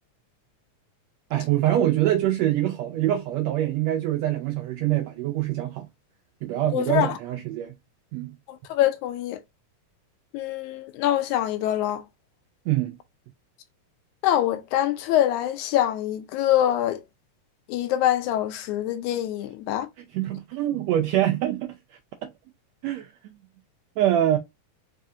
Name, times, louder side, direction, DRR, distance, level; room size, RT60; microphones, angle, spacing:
voice 1, 1.3-5.9 6.4-7.7 8.1-8.3 12.7-13.0 20.0-21.8 22.8-23.3 24.0-24.4, right 13 dB, 80° right, 1.6 m, -24 dB
voice 2, 6.7-7.1 8.7-9.4 10.3-12.0 14.2-17.0 17.7-19.9, left 12 dB, 85° left, 2.0 m, -24 dB
4.9 x 2.4 x 2.6 m
omnidirectional pair, 3.5 m